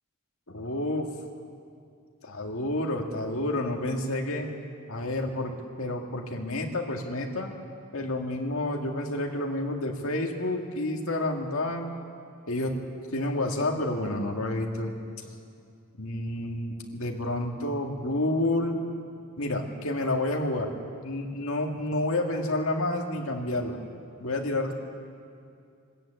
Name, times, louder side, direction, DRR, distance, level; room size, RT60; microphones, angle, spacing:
voice 1, 0.5-1.1 2.2-4.5 4.9-7.5 7.9-11.9 12.5-12.8 13.1-14.9 16.0-18.8 19.4-20.7 21.0-23.8 24.2-24.7, left 1 dB, 70° left, 1 dB, 2.1 m, -29 dB
22.0 x 13.5 x 9.0 m, 2.4 s
head